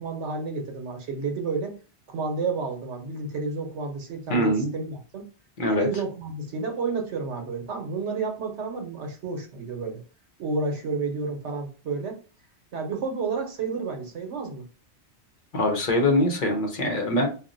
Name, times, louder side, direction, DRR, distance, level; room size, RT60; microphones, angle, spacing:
voice 1, 0.0-1.7 2.1-5.3 5.7-10.0 10.4-12.2 12.7-14.6, right 4 dB, 85° right, 3 dB, 1.1 m, -30 dB
voice 2, 4.3-4.7 5.6-5.9 15.5-17.3, left 1 dB, 50° left, 2 dB, 0.8 m, -23 dB
2.5 x 2.1 x 3.8 m, 0.35 s
omnidirectional pair, 1.1 m